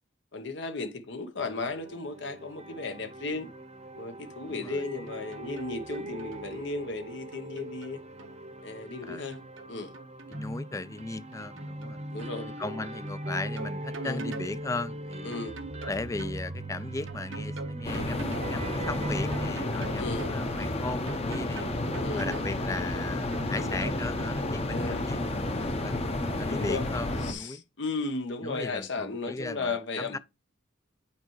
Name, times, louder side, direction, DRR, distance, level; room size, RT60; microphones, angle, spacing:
voice 1, 0.3-3.5 4.0-8.0 8.6-9.4 9.7-9.9 12.1-12.5 14.0-14.2 15.2-15.6 20.0-20.3 22.0-22.5 24.7-25.1 26.5-26.9 27.2-30.2, left 3 dB, 65° left, 1.0 m, -35 dB
sound 1, 1.4-19.5, right 1 dB, 35° right, 0.8 m, -40 dB
sound 2, 5.1-5.7 5.9-6.5 7.3-8.3 9.1-10.5 11.3-11.9 12.2-12.3 13.1-14.5 15.3-16.4 17.1-18.5 19.3-20.4 21.1-22.5 23.3-24.2, right 4 dB, 80° right, 0.8 m, -43 dB
voice 2, 10.3-12.0 12.6-15.4 15.8-21.7 22.2-25.9 26.3-27.6 28.4-30.2, left 3 dB, 15° left, 0.3 m, -37 dB
sound 3, 17.8-27.3, left 2 dB, 35° left, 0.9 m, -31 dB
8.8 x 4.5 x 3.1 m
head